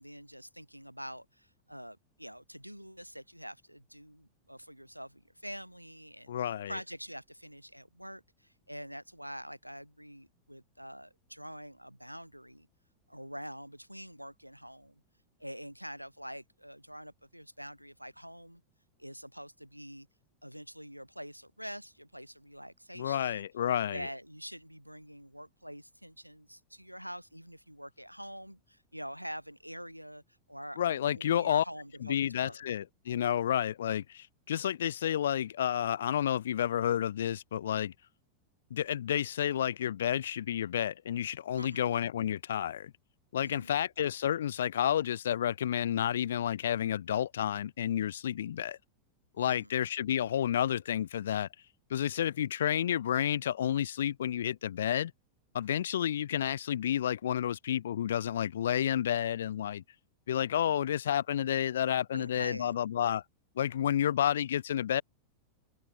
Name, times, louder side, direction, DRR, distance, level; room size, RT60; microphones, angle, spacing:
voice 1, 0.0-12.7 13.1-15.0 15.4-18.6 19.0-20.1 20.4-23.5 23.8-30.2 30.5-32.6 41.5-41.9 43.4-43.8 49.4-49.7 62.1-62.8, equal, 90° right, 5.5 m, -45 dB
voice 2, 6.3-6.7 23.0-24.1 30.8-31.6 32.0-37.9 38.7-42.9 43.3-48.8 49.4-51.5 51.9-55.1 55.5-59.8 60.3-63.2 63.6-65.0, left 10 dB, 65° left, 0.9 m, -30 dB
open air
figure-of-eight pair, 90°, 0 cm